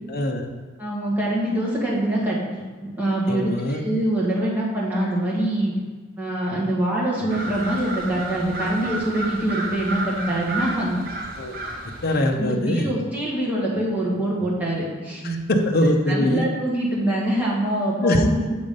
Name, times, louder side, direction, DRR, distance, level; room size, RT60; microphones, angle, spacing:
voice 1, 0.1-0.5 3.3-3.8 11.4-11.5 12.0-12.9 15.2-16.5 18.0-18.2, left 1 dB, 50° left, 3 dB, 0.7 m, -22 dB
voice 2, 0.8-5.7 6.2-11.0 12.4-15.4 16.1-18.5, right 1 dB, 10° right, -7 dB, 1.7 m, -24 dB
sound 1, 7.3-12.3, right 2 dB, 45° right, 0.9 m, -31 dB
7.1 x 3.8 x 5.2 m, 1.4 s
head